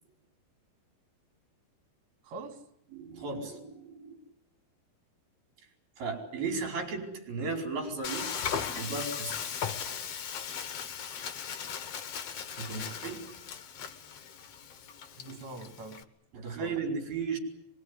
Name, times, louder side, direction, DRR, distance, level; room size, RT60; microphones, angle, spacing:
voice 1, 2.2-2.6 12.6-13.2 15.2-16.0 16.4-16.8, right 3 dB, 70° right, 6 dB, 5.0 m, -45 dB
voice 2, 2.9-4.2 6.0-8.3 8.8-9.3 12.6-13.3 15.3-15.4 16.3-17.4, right 4 dB, 55° right, 2 dB, 6.7 m, -35 dB
Frying (food), 8.0-16.0, left 7 dB, 90° left, 1.3 m, -38 dB
24.5 x 22.5 x 9.9 m, 0.76 s
omnidirectional pair, 5.3 m